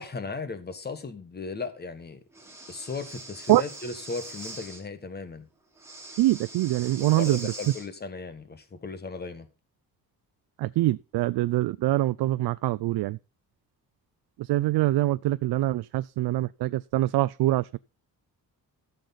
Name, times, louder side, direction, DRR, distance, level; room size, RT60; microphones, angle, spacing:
voice 1, 0.0-2.2 2.7-5.5 7.0-9.5, left 4 dB, 25° left, 1.4 m, -36 dB
Breathing, 2.3-4.8 5.8-7.9, right 2 dB, 5° right, 2.8 m, -42 dB
voice 2, 6.2-7.4 10.6-13.2 14.5-17.8, right 16 dB, 85° right, 0.5 m, -24 dB
14.5 x 6.6 x 4.1 m
wide cardioid pair, 170°, 38 cm